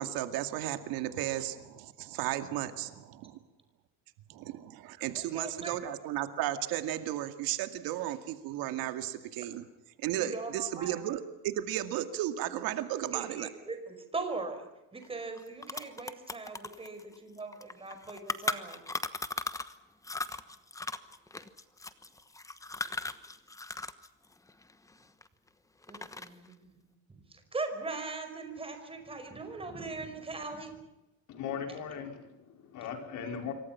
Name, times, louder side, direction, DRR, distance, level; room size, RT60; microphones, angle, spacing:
voice 1, 0.0-3.3 4.3-9.6 10.0-13.5, right 12 dB, 75° right, 8 dB, 2.3 m, -34 dB
voice 2, 5.1-5.8 10.1-11.0 13.1-18.8 25.9-26.7 27.1-30.8, right 3 dB, 15° right, 6 dB, 5.1 m, -40 dB
sound 1, 15.0-15.1 15.4-19.8 20.0-24.1 24.3-25.5 25.8-26.5, left 2 dB, 10° left, 1.1 m, -37 dB
voice 3, 31.3-33.5, left 7 dB, 55° left, 4 dB, 5.1 m, -38 dB
27.0 x 24.0 x 5.8 m, 0.98 s
cardioid pair, 155°, 36 cm